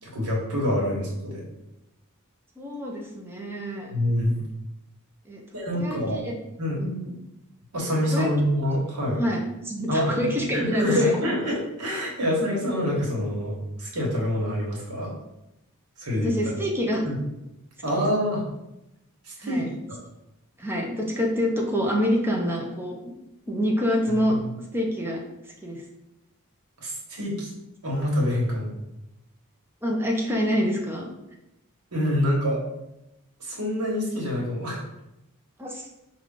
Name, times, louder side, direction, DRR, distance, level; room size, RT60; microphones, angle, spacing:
voice 1, 0.0-1.4 3.9-4.4 5.5-6.2 6.6-6.8 7.7-9.2 9.9-10.2 10.5-15.1 16.0-16.3 17.0-17.2 17.8-18.4 19.2-20.0 24.1-24.4 26.8-27.5 27.8-28.7 31.9-32.6 33.4-34.8, left 1 dB, 90° right, -2 dB, 1.3 m, -26 dB
voice 2, 2.6-3.9 5.3-5.4 5.7-6.3 6.8-7.2 8.1-8.3 8.6-8.7 9.1-11.1 16.2-17.1 17.9-18.1 19.4-19.7 20.6-23.1 23.5-24.4 24.7-25.2 25.6-25.8 29.8-31.1 35.6-35.9, equal, 10° right, -1 dB, 0.6 m, -26 dB
4.9 x 2.4 x 3.7 m, 0.91 s
head